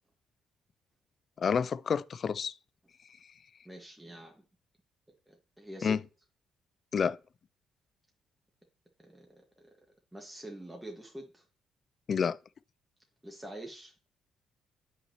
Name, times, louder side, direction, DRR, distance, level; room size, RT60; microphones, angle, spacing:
voice 1, 1.4-2.5 5.8-6.0 6.9-7.2 12.1-12.4, left 6 dB, 50° left, 0.4 m, -29 dB
voice 2, 3.6-4.3 5.3-6.0 9.0-9.7 10.1-11.4 13.2-13.9, right 1 dB, 10° right, 1.7 m, -46 dB
8.3 x 5.6 x 3.0 m
hypercardioid pair, 50°, 0 cm